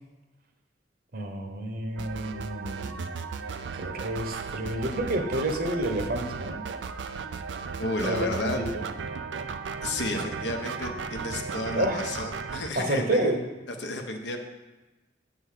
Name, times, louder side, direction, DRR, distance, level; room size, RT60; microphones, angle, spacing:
voice 1, 1.1-3.1 3.8-6.6 8.0-8.7 11.8-12.1 12.7-13.4, right 1 dB, 55° right, 4 dB, 1.0 m, -29 dB
sound 1, 2.0-12.7, right 5 dB, 75° right, 0.4 m, -35 dB
voice 2, 7.8-8.6 9.8-13.3 13.8-14.4, left 2 dB, 70° left, 4 dB, 0.9 m, -32 dB
7.9 x 3.9 x 6.5 m, 1.1 s
head